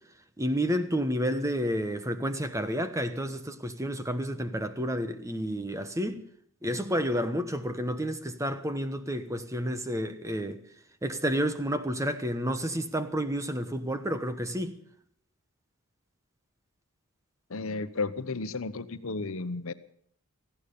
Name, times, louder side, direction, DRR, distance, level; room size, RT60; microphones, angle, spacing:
voice 1, 0.4-6.2 6.6-10.6 11.0-14.8, equal, 15° right, 1.1 m, -30 dB
voice 2, 17.5-19.7, left 3 dB, 65° left, 0.9 m, -33 dB
18.5 x 15.0 x 5.3 m
head